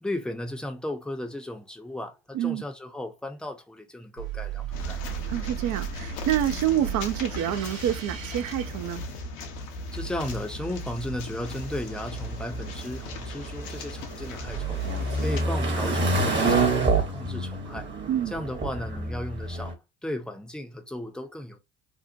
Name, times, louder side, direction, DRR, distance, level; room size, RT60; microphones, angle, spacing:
voice 1, 0.0-5.0 9.9-14.8 15.2-17.9 18.3-21.6, left 1 dB, ahead, 0.6 m, -35 dB
sound 1, 4.2-9.5, right 10 dB, 80° right, 0.9 m, -36 dB
sound 2, 4.7-15.4, left 2 dB, 70° left, 0.8 m, -37 dB
voice 2, 5.3-9.0 14.8-15.3 18.1-18.3, right 11 dB, 45° right, 0.5 m, -28 dB
sound 3, 11.4-19.7, right 3 dB, 25° right, 1.0 m, -28 dB
2.9 x 2.1 x 2.6 m
figure-of-eight pair, 55°, 41 cm